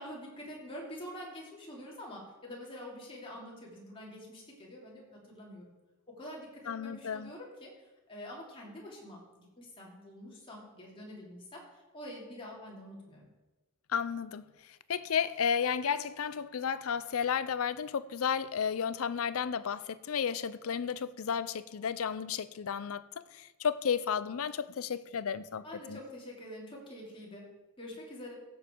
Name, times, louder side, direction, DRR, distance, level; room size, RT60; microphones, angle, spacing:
voice 1, 0.0-5.7 6.1-7.7 8.1-13.2 25.6-27.5 27.8-28.3, equal, 25° left, 2.9 m, -46 dB
voice 2, 6.7-7.3 13.9-14.4 14.9-23.0 23.3-26.0, left 7 dB, 70° left, 0.5 m, -33 dB
15.5 x 7.3 x 4.5 m
head